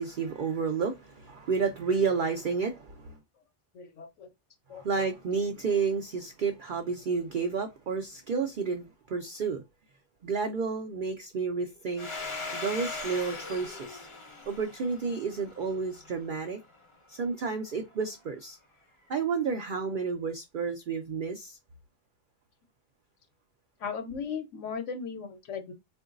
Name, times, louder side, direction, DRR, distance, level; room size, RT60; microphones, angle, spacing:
voice 1, 0.0-3.2 4.7-9.6 10.2-12.1 12.5-14.1 14.5-16.6 17.1-18.6 19.1-21.6, right 5 dB, 70° right, 0.5 m, -31 dB
voice 2, 3.7-4.3 4.7-4.9 23.8-25.7, left 6 dB, 65° left, 1.0 m, -37 dB
Domestic sounds home sounds, 12.0-16.4, left 3 dB, 30° left, 0.6 m, -39 dB
3.7 x 2.5 x 2.4 m
omnidirectional pair, 1.4 m